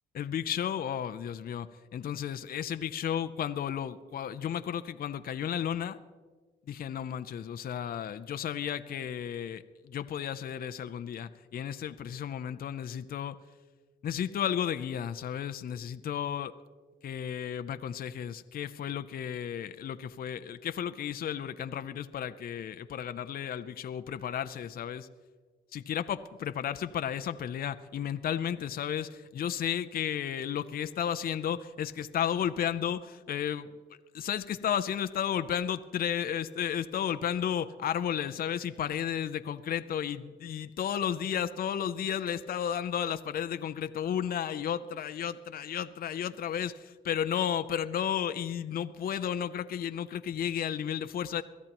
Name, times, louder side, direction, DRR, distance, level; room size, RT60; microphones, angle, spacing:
voice 1, 0.1-6.0 6.7-13.4 14.0-16.6 17.0-25.1 25.7-33.7 34.1-51.4, left 9 dB, 50° left, 11 dB, 0.5 m, -33 dB
22.5 x 13.5 x 3.0 m, 1.5 s
cardioid pair, 90°, 20 cm